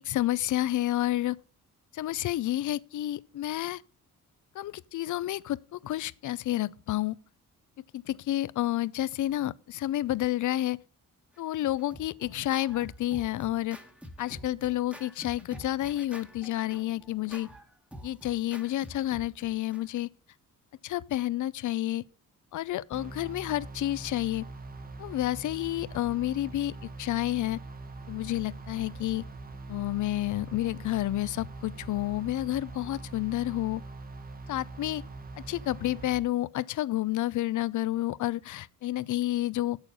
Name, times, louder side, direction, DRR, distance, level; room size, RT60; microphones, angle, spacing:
voice 1, 0.1-1.4 1.9-3.8 4.6-7.2 7.9-10.8 11.4-13.8 14.2-17.5 18.0-20.1 20.8-22.0 22.5-24.4 25.0-26.7 27.0-27.6 28.1-29.2 29.7-33.8 34.5-35.0 35.5-39.8, left 14 dB, 60° left, 0.5 m, -30 dB
Scratching (performance technique), 11.3-19.8, equal, 5° right, 1.2 m, -48 dB
sound 1, 22.9-36.2, right 3 dB, 25° right, 1.0 m, -43 dB
8.2 x 7.0 x 5.3 m
cardioid pair, 110°, 33 cm